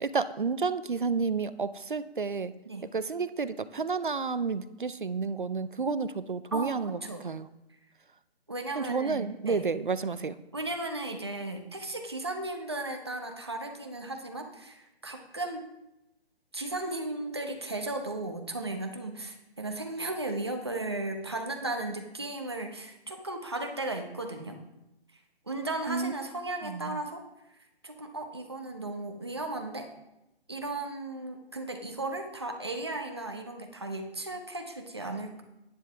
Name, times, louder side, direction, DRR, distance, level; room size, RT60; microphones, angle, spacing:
voice 1, 0.0-2.5 2.9-7.0 7.2-7.5 8.8-10.4 25.9-26.1 26.6-27.0, right 4 dB, 50° right, 14 dB, 0.5 m, -30 dB
voice 2, 6.5-7.3 8.5-9.7 10.5-15.6 16.5-24.6 25.5-27.2 27.8-29.9 30.5-35.4, right 2 dB, 25° right, 4 dB, 0.8 m, -35 dB
10.5 x 9.5 x 3.4 m, 0.91 s
hypercardioid pair, 180°, 32 cm